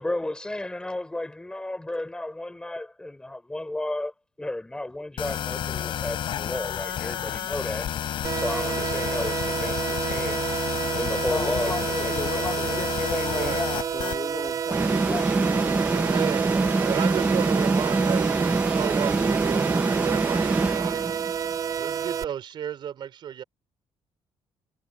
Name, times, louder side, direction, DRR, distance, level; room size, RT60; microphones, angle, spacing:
voice 1, 0.0-7.9 8.4-10.5 10.9-13.6 15.3-15.4, left 1 dB, 10° left, 4.3 m, -33 dB
sound 1, 5.2-14.2, left 10 dB, 65° left, 4.1 m, -31 dB
sound 2, 8.2-22.2, right 8 dB, 40° right, 0.6 m, -29 dB
voice 2, 11.3-16.2, left 4 dB, 25° left, 1.6 m, -34 dB
voice 3, 13.3-13.6 16.1-16.5 16.8-21.2 21.7-23.4, right 9 dB, 55° right, 5.1 m, -33 dB
sound 3, 14.7-21.3, right 3 dB, 15° right, 1.0 m, -24 dB
cardioid pair, 160°, 9 cm